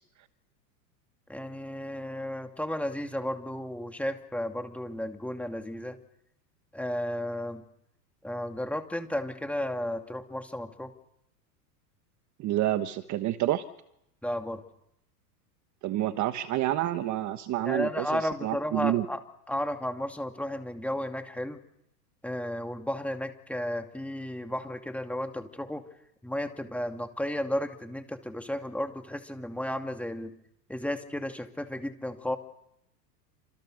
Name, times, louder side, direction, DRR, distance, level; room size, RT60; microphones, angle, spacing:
voice 1, 1.3-6.0 6.7-7.6 8.2-10.9 14.2-14.6 17.6-19.2 19.5-21.6 22.2-25.8 26.2-30.3 30.7-32.4, left 1 dB, 5° left, 5 dB, 2.5 m, -33 dB
voice 2, 12.4-13.6 15.8-19.0, right 14 dB, 35° right, 10 dB, 1.4 m, -28 dB
28.5 x 27.0 x 6.6 m, 0.78 s
hypercardioid pair, 120°, 49 cm